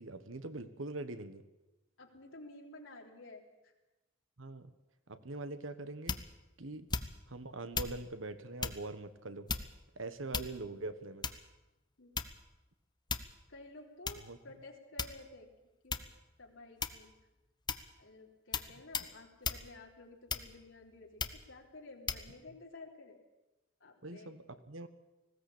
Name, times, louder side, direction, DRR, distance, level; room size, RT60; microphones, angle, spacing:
voice 1, 0.0-1.4 4.4-4.7 5.1-6.2 6.6-6.9 7.3-9.5 10.0-11.3 14.2-14.4 24.0-24.9, right 2 dB, 85° right, 11 dB, 1.4 m, -43 dB
voice 2, 2.0-3.7 12.0-12.1 13.5-15.5 15.8-16.0 16.4-17.1 18.0-23.2 23.8-24.3, left 2 dB, 80° left, 0 dB, 3.6 m, -53 dB
sound 1, 6.1-6.4 6.9-7.3 7.7-8.0 8.6-8.8 9.5-9.9 10.3-10.8 11.2-11.5 12.2-12.5 13.1-13.4 14.1-14.2 15.0-15.4 15.9-16.2 16.8-17.1 17.7-17.9 18.5-18.7 18.9-19.1 19.4-19.6 20.3-20.7 21.2-21.4 22.1-22.2, left 5 dB, 20° left, 0.9 m, -36 dB
19.5 x 16.5 x 8.6 m, 1.0 s
head